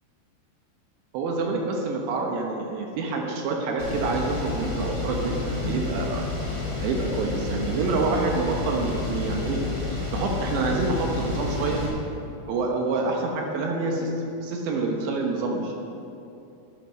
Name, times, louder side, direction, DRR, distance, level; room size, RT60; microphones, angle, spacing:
voice 1, 1.1-6.2 6.8-9.6 9.9-11.8 12.5-14.1 14.4-15.7, right 3 dB, 75° right, 1 dB, 3.3 m, -27 dB
sound 1, 3.8-11.9, left 3 dB, 20° right, 2.5 m, -30 dB
11.5 x 10.0 x 6.3 m, 2.7 s
omnidirectional pair, 5.4 m